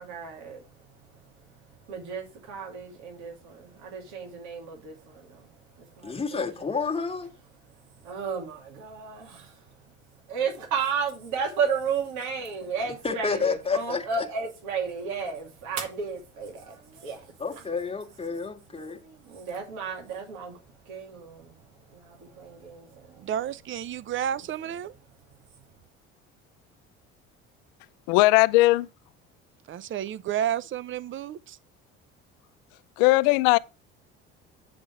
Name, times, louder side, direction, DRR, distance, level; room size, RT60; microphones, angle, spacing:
voice 1, 0.0-1.5 1.9-6.5 8.0-9.8 10.3-17.3 18.9-23.3, right 5 dB, 75° right, 2.6 m, -34 dB
voice 2, 6.0-7.3 13.0-14.1 17.4-19.0, left 5 dB, 20° left, 1.7 m, -30 dB
voice 3, 23.2-24.9 29.7-31.6, right 10 dB, 40° right, 0.6 m, -31 dB
voice 4, 28.1-28.9 33.0-33.6, left 20 dB, 85° left, 0.5 m, -18 dB
8.6 x 3.9 x 6.1 m
supercardioid pair, 85°, 30 cm